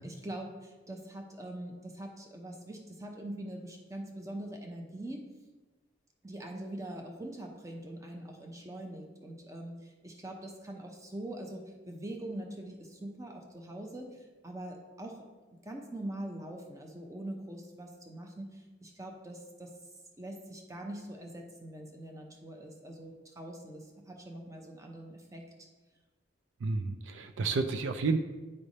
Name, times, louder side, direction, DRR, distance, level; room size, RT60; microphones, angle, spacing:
voice 1, 0.0-5.3 6.2-15.3 15.6-19.7 20.2-25.7, right 1 dB, 15° right, 2 dB, 0.7 m, -43 dB
voice 2, 26.6-28.2, right 4 dB, 75° right, 8 dB, 0.4 m, -30 dB
9.7 x 3.3 x 4.1 m, 1.2 s
head